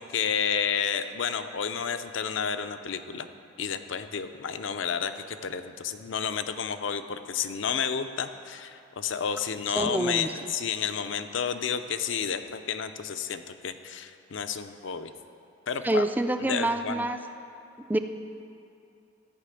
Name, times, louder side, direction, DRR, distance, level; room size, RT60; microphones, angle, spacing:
voice 1, 0.0-3.3 3.6-15.1 15.7-16.1 16.5-17.1, left 7 dB, 65° left, 9 dB, 0.5 m, -31 dB
voice 2, 9.8-10.5 15.8-17.2 17.8-18.0, right 1 dB, 10° right, 7 dB, 0.3 m, -27 dB
13.5 x 5.8 x 8.3 m, 2.6 s
head